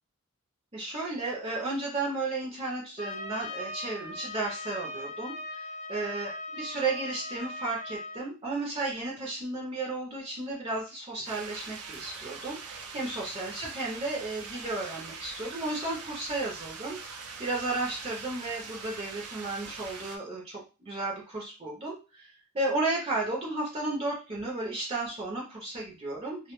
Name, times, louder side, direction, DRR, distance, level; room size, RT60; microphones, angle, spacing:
voice 1, 0.7-26.5, right 2 dB, 25° right, -3 dB, 0.5 m, -34 dB
Trumpet, 3.0-8.3, left 2 dB, 30° left, 0.3 m, -39 dB
sound 1, 11.2-20.2, right 5 dB, 80° right, 0.5 m, -43 dB
2.2 x 2.1 x 2.9 m, 0.32 s
head